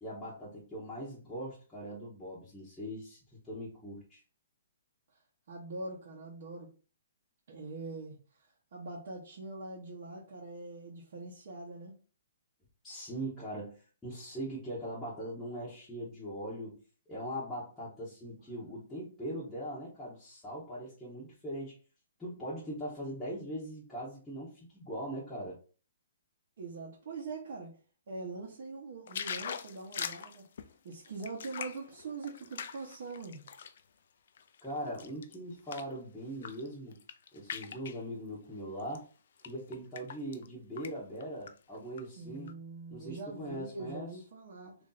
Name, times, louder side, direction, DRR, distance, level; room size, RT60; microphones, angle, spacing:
voice 1, 0.0-4.2 12.8-16.8 17.1-21.7 22.2-25.6 34.6-37.0 37.3-39.1 39.4-42.5 42.9-44.1, right 1 dB, 5° left, -10 dB, 0.8 m, -41 dB
voice 2, 5.5-6.7 7.5-8.2 8.7-11.9 26.6-27.8 28.1-30.5 30.8-33.4 42.2-44.7, right 3 dB, 45° right, -4 dB, 0.9 m, -43 dB
sound 1, 29.1-33.8 34.3-36.0 36.3-36.7 36.9-38.0 38.8-39.0 39.4-40.5 40.8-40.9 41.2-42.0 42.5-42.6, left 7 dB, 50° left, 0.3 m, -42 dB
3.2 x 2.6 x 3.9 m, 0.37 s
hypercardioid pair, 175°, 0 cm